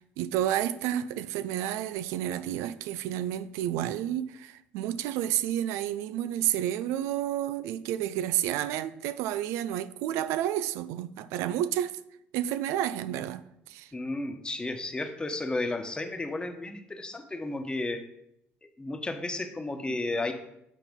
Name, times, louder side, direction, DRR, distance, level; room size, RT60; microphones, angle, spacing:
voice 1, 0.0-11.9 12.3-13.9, right 12 dB, 85° right, 0.3 m, -30 dB
voice 2, 13.9-18.0 18.6-20.3, left 2 dB, 20° left, 1.1 m, -33 dB
8.3 x 4.1 x 5.2 m
supercardioid pair, 80°, 5 cm